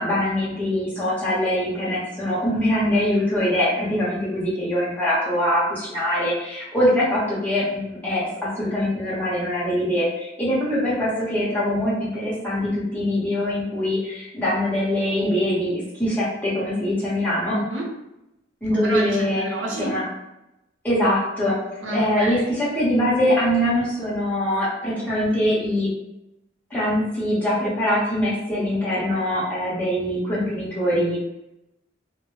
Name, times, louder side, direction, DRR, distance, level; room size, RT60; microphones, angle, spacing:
voice 1, 0.0-17.6 18.6-19.4 19.8-20.1 20.8-25.9 26.7-31.2, left 1 dB, 10° left, -9 dB, 0.9 m, -23 dB
voice 2, 17.5-17.9 18.8-19.9 21.8-22.4, right 1 dB, 70° right, -4 dB, 0.8 m, -28 dB
2.1 x 2.0 x 3.0 m, 0.88 s
head